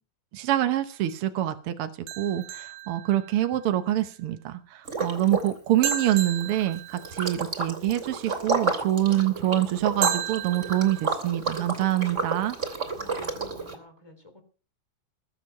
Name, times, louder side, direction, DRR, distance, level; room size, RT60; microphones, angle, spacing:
voice 1, 0.3-1.9 2.2-12.5, right 13 dB, 65° right, 8 dB, 1.5 m, -26 dB
sound 1, 2.1-3.6 5.8-7.5 10.0-11.1, right 9 dB, 85° right, 2.5 m, -33 dB
Liquid, 4.8-5.5 5.8-13.7, right 4 dB, 25° right, 2.6 m, -31 dB
voice 2, 12.9-14.4, equal, 10° left, 5 dB, 3.4 m, -50 dB
21.0 x 7.5 x 5.8 m, 0.38 s
omnidirectional pair, 3.5 m